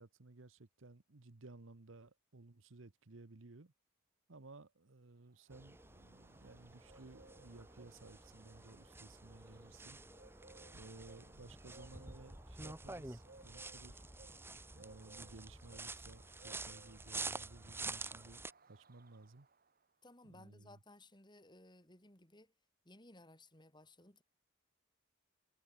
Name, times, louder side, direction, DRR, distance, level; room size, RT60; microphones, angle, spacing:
voice 1, 0.0-3.7 4.3-10.0 10.7-14.0 14.7-19.5 20.3-20.8, right 3 dB, 65° right, 1.1 m, -57 dB
sound 1, 5.2-19.8, right 3 dB, 45° right, 3.8 m, -64 dB
sound 2, 5.5-18.5, right 3 dB, 10° right, 1.5 m, -49 dB
voice 2, 20.0-22.5 22.8-24.2, left 2 dB, 20° left, 6.1 m, -60 dB
head